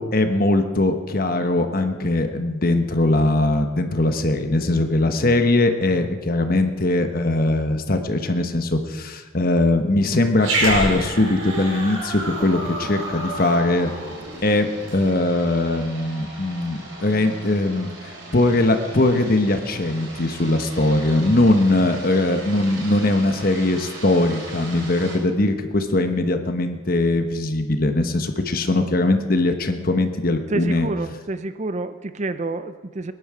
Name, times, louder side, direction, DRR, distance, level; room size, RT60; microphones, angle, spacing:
voice 1, 0.0-13.9 14.4-17.9 18.3-30.9, left 2 dB, 45° left, 7 dB, 1.2 m, -20 dB
Growling, 10.4-15.0, right 2 dB, 80° right, 5.2 m, -28 dB
sound 1, 11.4-25.2, right 2 dB, 60° right, 4.2 m, -39 dB
voice 2, 30.5-33.1, right 2 dB, 35° right, 11 dB, 0.5 m, -28 dB
20.5 x 11.0 x 4.9 m, 1.5 s
head